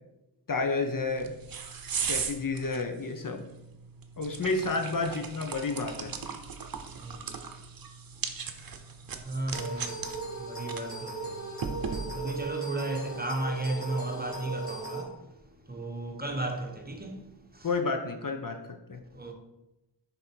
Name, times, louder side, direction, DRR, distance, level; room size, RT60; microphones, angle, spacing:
voice 1, 0.5-1.3 1.9-3.4 4.2-6.1 17.6-18.6 18.9-19.0, left 3 dB, 45° left, 0.8 m, -30 dB
sound 1, 1.0-12.4, right 6 dB, 50° right, 0.8 m, -38 dB
voice 2, 6.9-7.3 9.2-10.1 10.3-11.4 12.1-15.3 15.7-17.7 19.1-19.3, right 2 dB, 20° right, 1.0 m, -34 dB
sound 2, 9.5-15.0, right 2 dB, 30° left, 2.6 m, -38 dB
6.4 x 4.3 x 4.5 m
wide cardioid pair, 80°, 45 cm